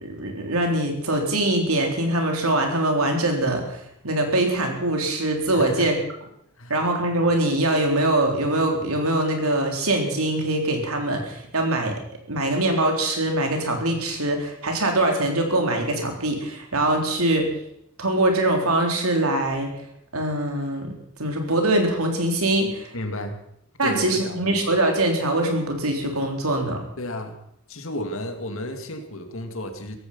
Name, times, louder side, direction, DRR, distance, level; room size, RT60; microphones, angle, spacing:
voice 1, 0.0-5.9 6.7-11.9 12.3-17.5 18.0-19.7 20.1-20.9 21.2-22.9 23.8-26.8, right 1 dB, 90° right, 3 dB, 3.9 m, -23 dB
voice 2, 5.5-5.9 6.6-6.9 22.9-23.4 23.8-24.5 27.0-27.3 27.7-30.0, left 1 dB, 65° left, 6 dB, 2.5 m, -32 dB
17.0 x 15.0 x 5.7 m, 0.73 s
head